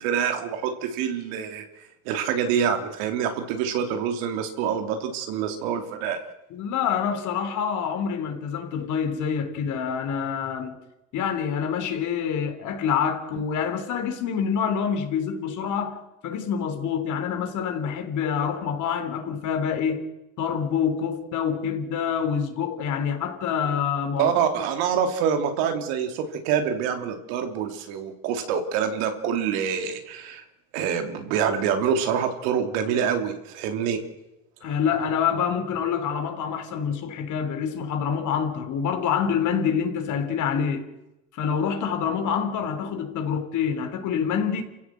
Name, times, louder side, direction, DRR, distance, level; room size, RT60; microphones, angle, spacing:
voice 1, 0.0-1.6 2.0-6.2 24.2-30.4 30.7-34.0 34.6-34.7, right 7 dB, 80° right, 3.2 m, -26 dB
voice 2, 6.5-10.8 11.1-20.1 20.4-24.4 34.6-40.8 41.3-44.6, left 7 dB, 60° left, 3.6 m, -26 dB
28.5 x 15.5 x 7.7 m
supercardioid pair, 105°, 34 cm